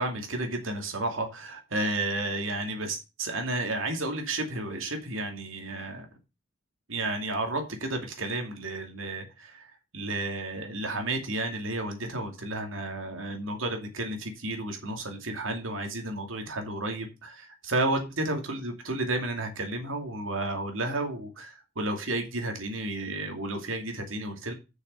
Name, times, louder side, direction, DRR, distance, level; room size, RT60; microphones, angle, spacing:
voice 1, 0.0-6.1 6.9-24.5, right 2 dB, 85° right, 4 dB, 2.5 m, -32 dB
6.8 x 6.5 x 6.4 m, 0.28 s
head